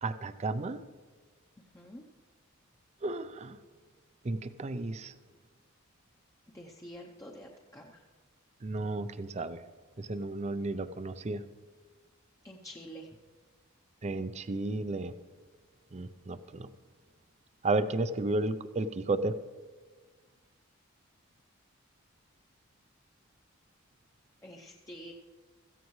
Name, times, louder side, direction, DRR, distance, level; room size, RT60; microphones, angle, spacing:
voice 1, 0.0-0.8 3.0-3.6 4.2-5.1 8.6-9.6 10.0-11.4 14.0-15.1 15.9-16.7 17.6-19.4, right 2 dB, 30° right, 12 dB, 0.5 m, -33 dB
voice 2, 6.5-8.0 12.4-13.1 24.4-25.1, equal, 15° left, 0 dB, 0.7 m, -47 dB
16.5 x 14.5 x 3.2 m, 1.4 s
head